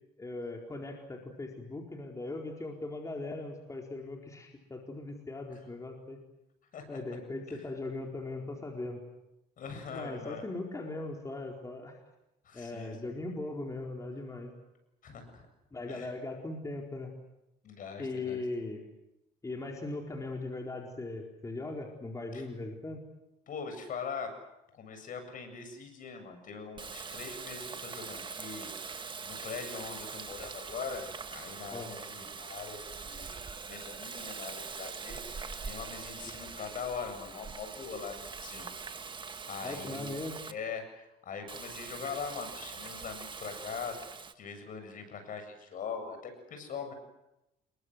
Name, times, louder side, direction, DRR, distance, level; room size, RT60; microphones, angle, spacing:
voice 1, 0.2-6.2 6.9-9.0 9.9-12.0 12.5-14.5 15.7-17.1 18.0-18.8 19.4-23.0 31.7-31.9 36.3-36.4 39.6-40.4, left 2 dB, 20° left, 1 dB, 4.4 m, -39 dB
voice 2, 9.6-10.4 12.4-13.0 15.0-15.5 15.9-16.1 17.6-18.4 22.3-22.4 23.5-24.3 24.7-28.7 29.2-38.7 39.5-40.2 40.5-44.0 44.3-46.9, left 5 dB, 55° left, 7 dB, 7.8 m, -42 dB
Water tap faucet, 26.8-40.5 41.5-44.3, right 5 dB, 30° right, 1.9 m, -43 dB
28.5 x 22.5 x 8.1 m, 0.90 s
cardioid pair, 110°, 17 cm